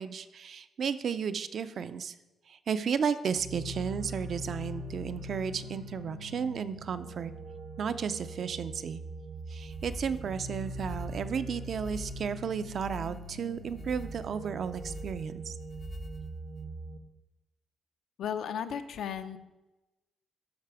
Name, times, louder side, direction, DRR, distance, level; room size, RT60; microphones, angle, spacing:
voice 1, 0.0-2.1 2.5-7.3 7.8-9.0 9.5-15.5, right 6 dB, 50° right, 12 dB, 0.4 m, -33 dB
sound 1, 3.3-17.0, right 1 dB, 75° right, 1.0 m, -42 dB
sound 2, 9.5-16.7, left 1 dB, 25° left, 0.7 m, -45 dB
voice 2, 18.2-19.4, left 8 dB, 75° left, 9 dB, 0.6 m, -35 dB
12.5 x 4.9 x 4.8 m, 1.0 s
wide cardioid pair, 160°, 0 cm